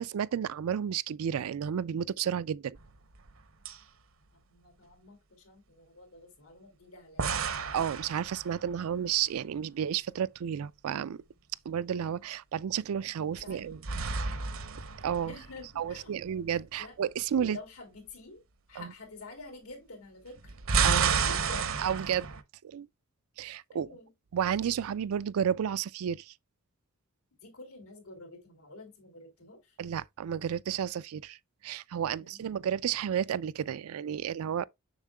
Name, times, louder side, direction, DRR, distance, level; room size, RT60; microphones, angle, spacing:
voice 1, 0.0-2.8 7.7-11.2 11.7-13.8 14.3-14.4 15.0-15.3 15.8-17.6 18.8-18.9 20.8-21.2 21.8-22.3 22.6-22.9 23.4-23.9 24.3-26.3 29.8-31.4 31.6-34.7, right 8 dB, 85° right, 0.4 m, -32 dB
sound 1, 2.8-3.4 3.6-3.8 7.2-8.9 13.4-15.9 20.4-22.4, right 6 dB, 65° right, 0.7 m, -31 dB
voice 2, 4.3-7.4 13.3-13.8 15.2-16.2 16.5-16.9 17.3-18.4 18.7-20.5 21.1-21.7 23.7-24.1 27.4-29.8 32.1-32.5, left 2 dB, 85° left, 3.2 m, -49 dB
7.2 x 6.5 x 2.2 m
head